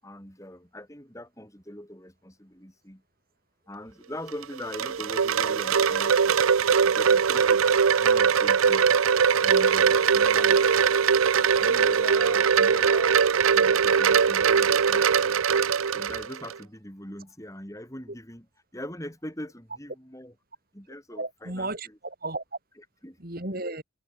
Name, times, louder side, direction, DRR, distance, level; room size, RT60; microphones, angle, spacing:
voice 1, 0.0-3.0 3.7-6.4 6.8-10.9 11.6-13.2 13.5-15.4 15.9-20.3 20.7-22.0 22.8-23.2, left 1 dB, 15° left, 6.4 m, -42 dB
Wind chime, 4.3-16.5, right 6 dB, 90° right, 0.6 m, -21 dB
voice 2, 11.4-11.7 21.2-22.4 23.2-23.8, right 2 dB, 45° right, 3.3 m, -34 dB
head